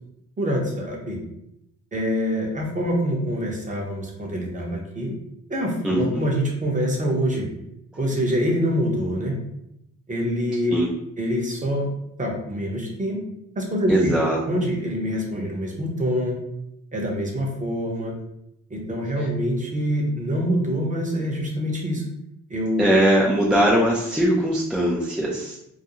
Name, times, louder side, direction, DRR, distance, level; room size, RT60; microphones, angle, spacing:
voice 1, 0.4-1.2 1.9-5.1 5.5-7.5 8.0-9.4 10.1-10.7 11.2-11.9 12.2-13.2 13.6-14.1 14.5-16.4 16.9-18.1 18.7-22.0 22.5-22.8, equal, 25° right, -1 dB, 0.7 m, -25 dB
voice 2, 5.8-6.3 10.7-10.9 13.9-14.4 19.2-19.3 22.8-25.6, right 1 dB, 5° right, -4 dB, 0.4 m, -20 dB
2.4 x 2.2 x 2.8 m, 0.82 s
cardioid pair, 90°, 30 cm